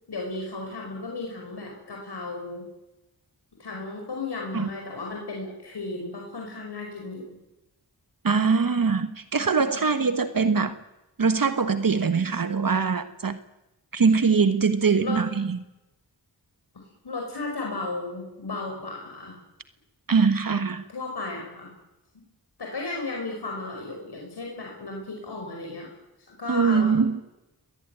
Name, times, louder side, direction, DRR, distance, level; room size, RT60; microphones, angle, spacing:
voice 1, 0.1-2.7 3.6-7.3 15.0-15.2 17.0-19.4 20.9-21.7 22.1-22.2 22.6-25.9 26.3-27.1, left 3 dB, 75° left, 0 dB, 5.5 m, -34 dB
voice 2, 8.2-10.8 11.2-13.4 13.9-15.6 20.1-20.8 26.5-27.1, right 5 dB, 55° right, 11 dB, 1.4 m, -22 dB
25.0 x 19.5 x 9.2 m, 0.97 s
wide cardioid pair, 60°, 40 cm